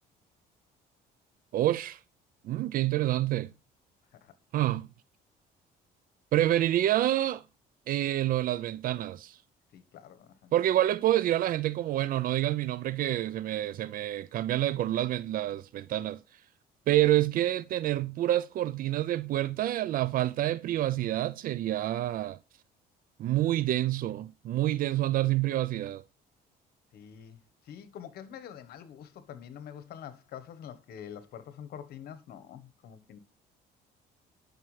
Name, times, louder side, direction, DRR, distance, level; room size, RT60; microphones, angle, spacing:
voice 1, 1.5-2.0 2.4-3.5 4.5-4.9 6.3-7.4 7.9-9.4 10.5-16.2 16.9-22.4 23.2-26.0, right 14 dB, 55° right, 0.4 m, -27 dB
voice 2, 9.7-10.5 26.9-27.4 27.6-33.2, left 9 dB, 65° left, 1.1 m, -46 dB
11.0 x 5.7 x 3.2 m
cardioid pair, 110°, 17 cm